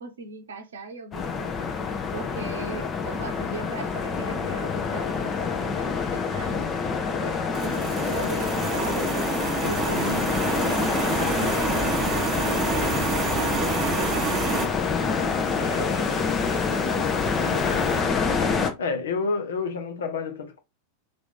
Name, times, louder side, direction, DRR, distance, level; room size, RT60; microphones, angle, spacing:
voice 1, 0.0-1.7 2.1-6.7 7.2-9.1 9.6-15.2 15.6-16.9 17.4-17.9, right 3 dB, 65° right, 0.8 m, -39 dB
sound 1, 1.1-18.7, left 5 dB, 25° left, 0.6 m, -27 dB
sound 2, 7.5-14.7, right 5 dB, 25° right, 0.8 m, -28 dB
sound 3, 8.4-18.0, right 1 dB, 10° right, 1.3 m, -42 dB
voice 2, 9.6-10.3 18.8-20.6, left 4 dB, 60° left, 0.8 m, -29 dB
3.0 x 2.6 x 3.6 m
figure-of-eight pair, 90°, 0 cm